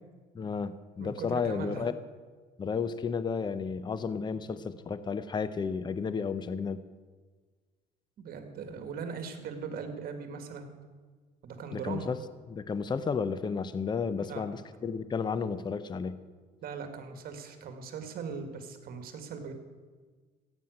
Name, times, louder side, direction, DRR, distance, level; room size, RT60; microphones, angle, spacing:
voice 1, 0.3-1.9 2.6-6.8 11.7-12.2 12.5-16.2, left 5 dB, 25° left, 13 dB, 0.7 m, -32 dB
voice 2, 1.0-1.9 8.2-10.7 11.4-12.1 14.2-14.5 16.6-19.5, right 5 dB, 60° right, 7 dB, 2.0 m, -40 dB
15.5 x 9.0 x 6.6 m, 1.4 s
cardioid pair, 110°, 17 cm